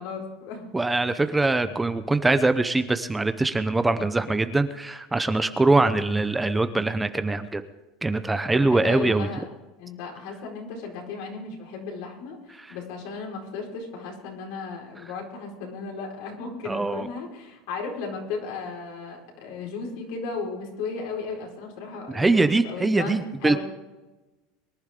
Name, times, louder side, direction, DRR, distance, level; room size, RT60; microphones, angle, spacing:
voice 1, 0.0-0.7 8.5-9.4 9.8-23.6, left 4 dB, 70° left, 0 dB, 4.5 m, -35 dB
voice 2, 0.7-7.6 8.0-9.3 16.7-17.1 22.1-23.6, right 2 dB, 10° right, 11 dB, 0.6 m, -23 dB
23.5 x 11.0 x 3.7 m, 1.1 s
supercardioid pair, 145°, 0 cm